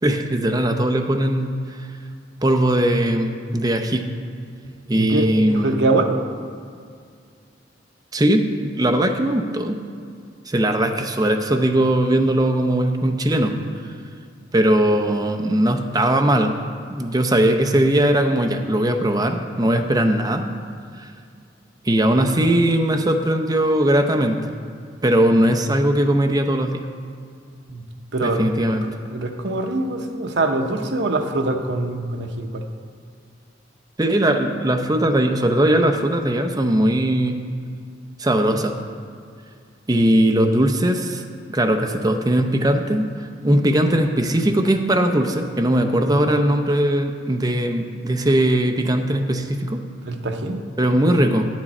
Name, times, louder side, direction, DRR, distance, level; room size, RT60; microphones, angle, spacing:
voice 1, 0.0-1.9 2.4-4.1 4.9-5.7 8.1-8.5 8.7-9.8 10.5-13.5 14.5-16.5 16.9-20.5 21.0-21.1 21.8-24.4 25.0-26.8 28.2-28.8 34.0-37.4 38.2-38.7 39.9-41.2 41.5-43.1 43.4-49.8 50.8-51.5, right 1 dB, 20° right, 5 dB, 0.6 m, -19 dB
voice 2, 4.6-6.2 27.7-27.8 28.1-28.4 28.8-32.6 50.0-50.6, right 2 dB, 65° right, 4 dB, 0.8 m, -23 dB
9.9 x 7.3 x 4.2 m, 2.2 s
head